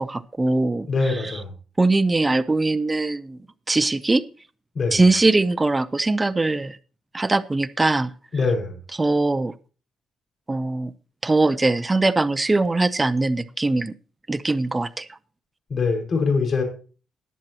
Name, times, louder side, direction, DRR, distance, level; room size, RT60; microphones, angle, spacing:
voice 1, 0.0-1.4 1.8-3.4 3.7-4.2 4.9-6.8 7.1-8.1 9.0-9.5 10.5-10.9 11.2-13.9 14.3-15.1, right 2 dB, 20° right, 15 dB, 0.6 m, -21 dB
voice 2, 0.9-1.5 4.7-5.0 8.3-8.8 15.7-16.6, left 4 dB, 45° left, 2 dB, 5.5 m, -23 dB
20.0 x 7.5 x 3.0 m, 0.37 s
cardioid pair, 90°, 0 cm